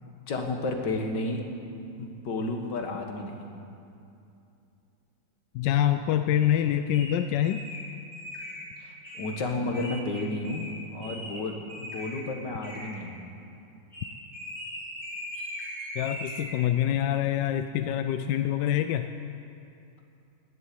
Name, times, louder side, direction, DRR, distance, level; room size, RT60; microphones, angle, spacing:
voice 1, 0.3-1.4 2.0-3.5 8.8-13.2, left 2 dB, 55° left, 3 dB, 2.0 m, -32 dB
voice 2, 5.5-7.7 16.0-19.1, left 11 dB, 75° left, 9 dB, 1.1 m, -25 dB
sound 1, 6.9-7.1 7.4-7.8 8.1-8.7 9.0-9.3 9.7-10.7 11.0-11.4 11.7-12.2 12.6-12.9 13.9-16.5, equal, 5° right, 4.4 m, -39 dB
17.5 x 7.4 x 10.0 m, 2.7 s
omnidirectional pair, 2.3 m